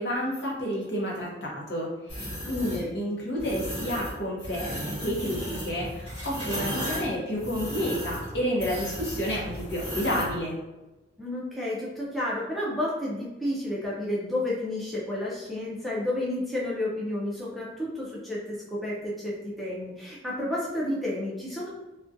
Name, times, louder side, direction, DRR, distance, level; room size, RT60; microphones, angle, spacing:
voice 1, 0.0-10.6, equal, 65° left, -3 dB, 0.7 m, -30 dB
sound 1, 2.1-2.8 3.4-4.1 4.4-10.3, equal, 30° left, 1.2 m, -35 dB
voice 2, 2.4-3.0 11.2-21.7, left 1 dB, ahead, -7 dB, 0.4 m, -31 dB
2.4 x 2.2 x 2.5 m, 1.1 s
head